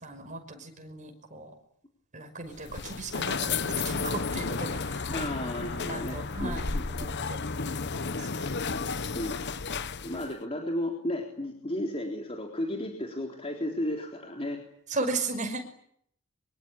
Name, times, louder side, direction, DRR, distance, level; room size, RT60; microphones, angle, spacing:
voice 1, 0.0-1.5 2.1-5.0 5.6-6.7 7.0-7.1 8.2-8.4 14.9-15.6, right 3 dB, 35° right, 5 dB, 5.8 m, -36 dB
sound 1, 2.5-10.3, left 4 dB, 50° left, 1.1 m, -32 dB
voice 2, 5.1-7.1 9.1-9.4 10.0-14.6, left 1 dB, 25° left, 1 dB, 3.7 m, -34 dB
25.0 x 24.0 x 10.0 m, 0.69 s
head